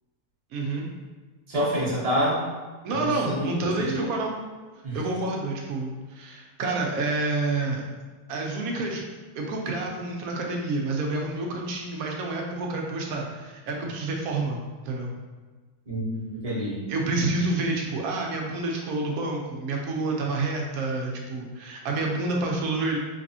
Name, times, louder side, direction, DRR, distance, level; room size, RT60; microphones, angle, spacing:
voice 1, 0.5-0.9 2.8-4.3 4.9-7.9 8.3-9.0 9.3-15.1 16.9-23.0, right 2 dB, 70° right, 0 dB, 1.0 m, -28 dB
voice 2, 1.5-2.4 2.9-3.5 3.8-4.0 4.8-5.0 15.9-16.9, equal, 30° right, -7 dB, 0.8 m, -27 dB
3.4 x 3.3 x 2.7 m, 1.3 s
omnidirectional pair, 1.7 m